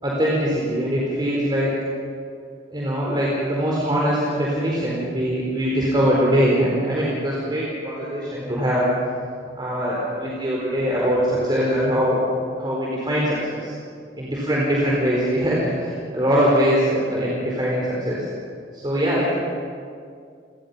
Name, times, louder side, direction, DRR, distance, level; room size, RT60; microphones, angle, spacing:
voice 1, 0.0-1.7 2.7-8.9 9.5-12.2 12.6-13.7 14.2-18.3 18.7-19.3, equal, 25° right, -5 dB, 4.4 m, -22 dB
29.0 x 19.5 x 5.7 m, 2.2 s
head